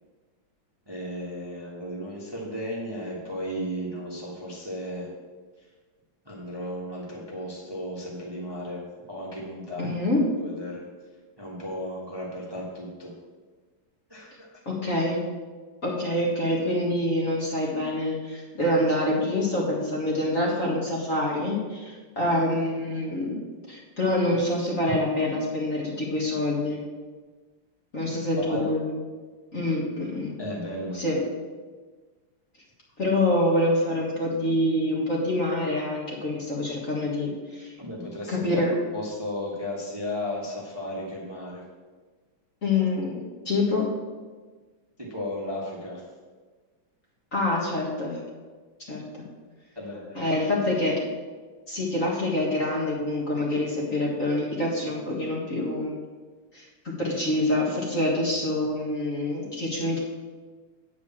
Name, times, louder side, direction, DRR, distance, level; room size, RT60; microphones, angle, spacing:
voice 1, 0.9-5.1 6.3-8.8 9.1-9.9 10.4-10.8 11.4-13.1 14.1-14.5 28.0-28.6 30.4-31.1 37.8-38.6 38.9-41.6 45.1-46.0 49.7-50.3, left 1 dB, 15° right, -4 dB, 1.5 m, -34 dB
voice 2, 9.8-10.3 14.7-15.2 15.8-23.4 23.7-26.8 27.9-28.9 29.5-30.4 30.9-31.2 33.0-37.7 38.3-38.7 42.6-43.2 43.5-43.9 47.3-48.2 48.9-49.0 50.1-51.0 51.7-56.0 56.5-56.7 57.0-60.0, left 1 dB, 40° left, -4 dB, 2.0 m, -26 dB
9.4 x 4.9 x 7.3 m, 1.4 s
omnidirectional pair, 2.4 m